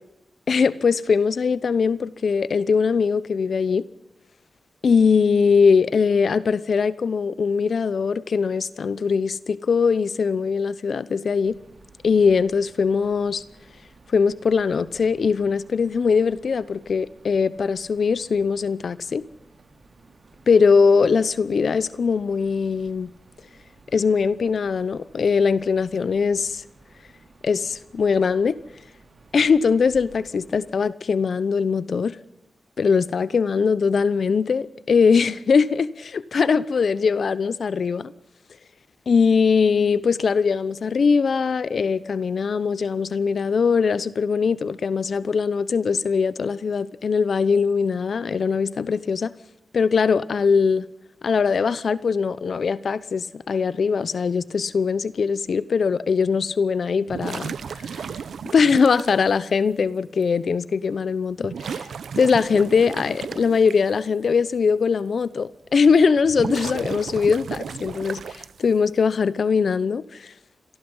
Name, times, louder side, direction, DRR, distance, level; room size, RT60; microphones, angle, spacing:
voice 1, 0.5-3.9 4.8-11.6 12.0-13.4 14.1-19.2 20.5-23.1 23.9-26.6 27.4-28.6 29.3-32.2 32.8-38.1 39.1-49.3 49.7-50.9 51.2-58.1 58.5-61.9 62.1-70.3, left 5 dB, 65° left, 0.9 m, -21 dB
sound 1, 11.4-30.7, right 3 dB, 55° right, 4.9 m, -53 dB
sound 2, 57.1-59.2 60.2-60.3 61.4-63.7 66.2-68.8, right 6 dB, 85° right, 0.8 m, -34 dB
26.5 x 19.5 x 5.6 m
wide cardioid pair, 95°, 0 cm